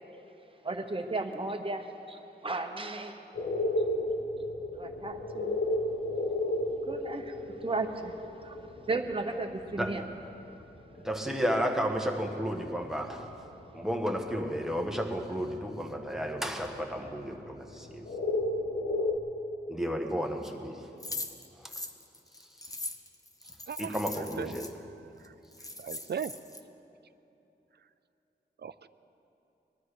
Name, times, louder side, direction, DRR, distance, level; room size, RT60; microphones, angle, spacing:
voice 1, 0.6-3.2 4.7-5.5 6.8-8.6 8.9-10.0, right 3 dB, 30° right, 5 dB, 1.1 m, -35 dB
sound 1, 3.3-10.3 10.6-11.2 11.5-12.1 12.4-19.2, left 1 dB, 65° left, 1.3 m, -34 dB
voice 2, 9.7-10.1 11.0-13.4 13.7-18.1 19.7-20.8 21.6-21.7 22.4-22.8 23.8-24.7, equal, ahead, 2 dB, 1.4 m, -33 dB
sound 2, 21.0-24.7 25.2-25.3 25.5-26.6, left 2 dB, 20° left, 0.9 m, -40 dB
voice 3, 23.7-24.5 25.2-25.3 25.8-26.3 28.6-28.7, right 7 dB, 65° right, 14 dB, 0.5 m, -37 dB
20.5 x 12.5 x 4.9 m, 3.0 s
wide cardioid pair, 80°, 18 cm